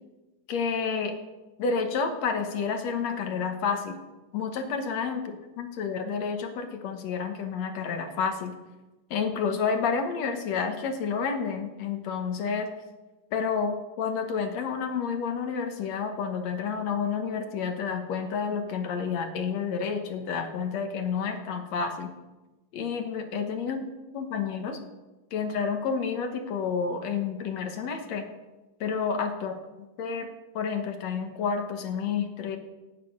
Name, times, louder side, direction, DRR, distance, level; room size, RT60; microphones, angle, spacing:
voice 1, 0.5-1.2 1.6-4.0 4.3-8.5 9.1-12.7 13.3-22.1 22.7-24.8 25.3-28.3 28.8-29.6 30.0-30.3 30.5-32.6, left 6 dB, 60° left, 6 dB, 2.1 m, -30 dB
16.5 x 9.3 x 5.3 m, 1.1 s
omnidirectional pair, 4.0 m